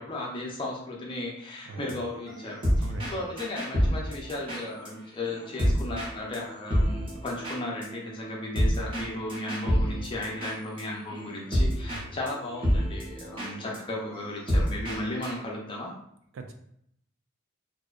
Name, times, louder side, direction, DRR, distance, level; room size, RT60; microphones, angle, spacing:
voice 1, 0.0-15.9, left 1 dB, 25° left, -2 dB, 0.5 m, -35 dB
sound 1, 1.7-4.9 5.2-6.1 6.3-6.4 6.7-12.0 12.3-12.4 12.6-15.3, equal, 25° right, 0.7 m, -28 dB
voice 2, 2.8-3.1 11.9-12.2 16.3-16.5, right 2 dB, 75° right, 6 dB, 0.3 m, -40 dB
2.6 x 2.1 x 2.3 m, 0.72 s
head